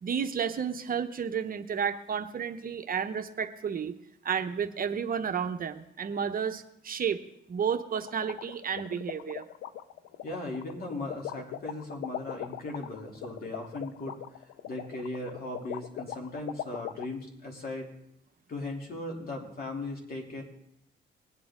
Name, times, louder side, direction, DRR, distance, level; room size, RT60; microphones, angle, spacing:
voice 1, 0.0-3.9 4.2-7.2 7.5-9.5, right 7 dB, 45° right, 8 dB, 0.8 m, -31 dB
sound 1, 7.9-17.0, left 12 dB, 90° left, 0.5 m, -39 dB
voice 2, 10.2-14.2 14.7-17.9 18.5-20.4, left 2 dB, 50° left, 0 dB, 2.9 m, -38 dB
19.5 x 8.6 x 3.7 m, 0.77 s
cardioid pair, 90°, 20 cm